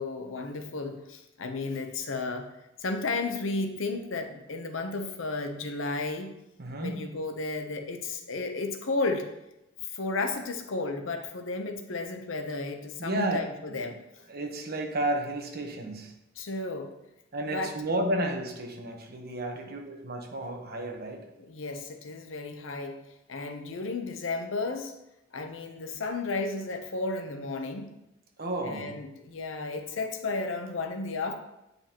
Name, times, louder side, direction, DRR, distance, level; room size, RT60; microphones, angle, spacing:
voice 1, 0.0-2.5 2.8-6.3 6.8-9.2 9.8-14.0 16.4-16.9 17.5-17.7 21.5-23.0 23.3-24.9 25.3-27.9 28.6-31.3, left 3 dB, 75° left, 5 dB, 0.8 m, -33 dB
voice 2, 6.6-7.0 13.0-13.4 13.7-13.8 14.3-16.1 17.3-21.2 28.4-29.0, right 1 dB, 50° right, 2 dB, 1.1 m, -32 dB
8.7 x 5.3 x 2.9 m, 0.91 s
head